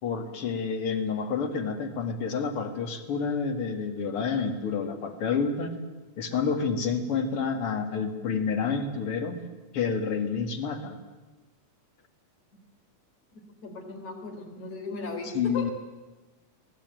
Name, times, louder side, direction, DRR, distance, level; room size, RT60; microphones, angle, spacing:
voice 1, 0.0-5.7 6.2-9.4 9.7-11.0 15.3-15.7, left 5 dB, 50° left, 7 dB, 2.7 m, -29 dB
voice 2, 13.6-15.7, left 3 dB, 70° left, 3 dB, 5.2 m, -36 dB
24.5 x 18.5 x 9.1 m, 1.2 s
omnidirectional pair, 3.4 m